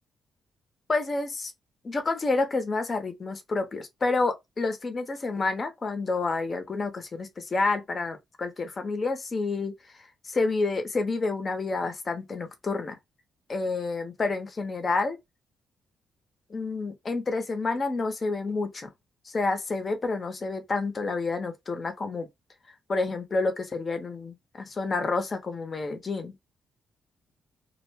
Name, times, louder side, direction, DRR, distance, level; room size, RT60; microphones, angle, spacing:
voice 1, 0.9-1.5 1.8-9.7 10.2-13.0 13.5-15.2 16.5-18.9 19.2-22.3 22.9-26.3, left 3 dB, 35° left, 0.8 m, -29 dB
2.3 x 2.2 x 3.3 m
cardioid pair, 85°, 0 cm